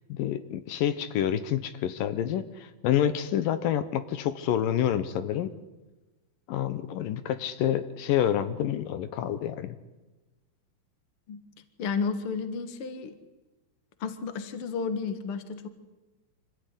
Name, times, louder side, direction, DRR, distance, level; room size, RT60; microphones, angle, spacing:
voice 1, 0.1-5.5 6.5-9.8, left 10 dB, 80° left, 12 dB, 2.6 m, -28 dB
voice 2, 11.8-13.2 14.0-15.7, left 5 dB, 45° left, 10 dB, 2.2 m, -32 dB
26.0 x 16.0 x 9.9 m, 1.1 s
omnidirectional pair, 4.0 m